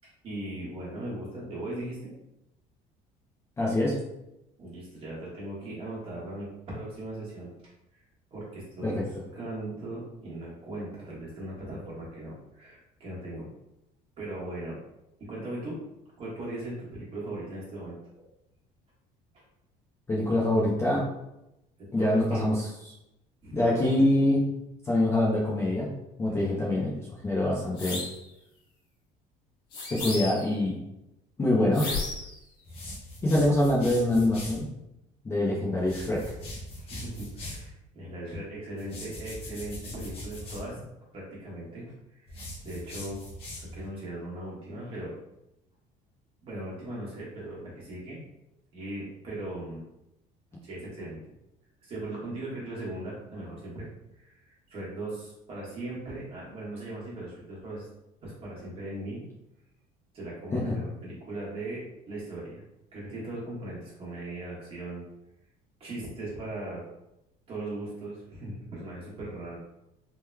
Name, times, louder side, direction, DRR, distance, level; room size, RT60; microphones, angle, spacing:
voice 1, 0.2-2.1 4.6-7.5 8.3-13.5 14.2-14.8 15.3-15.8 16.2-18.0 22.0-22.4 23.4-23.6 26.3-26.7 36.7-40.8 41.1-43.2 43.6-45.1 46.4-48.2 48.7-49.8 50.6-51.3 51.8-53.9 54.1-57.9 58.2-59.2 60.1-62.6 62.9-65.0 65.8-66.8 67.5-69.6, right 1 dB, 35° right, -6 dB, 1.4 m, -38 dB
voice 2, 3.6-4.0 8.8-9.0 20.1-21.0 21.9-22.5 23.5-24.4 24.8-25.9 26.2-26.9 27.2-28.0 29.9-30.7 31.4-31.9 33.2-34.7 35.2-36.2 60.5-60.6, left 1 dB, 15° left, -5 dB, 0.5 m, -24 dB
sound 1, 27.8-28.2 29.7-30.5 31.7-32.4, left 3 dB, 75° left, 1.4 m, -34 dB
sound 2, 32.7-34.6 35.8-37.7 38.8-40.7 42.3-43.9, left 1 dB, 40° left, 1.0 m, -41 dB
3.5 x 3.0 x 2.2 m, 0.88 s
cardioid pair, 155°, 15 cm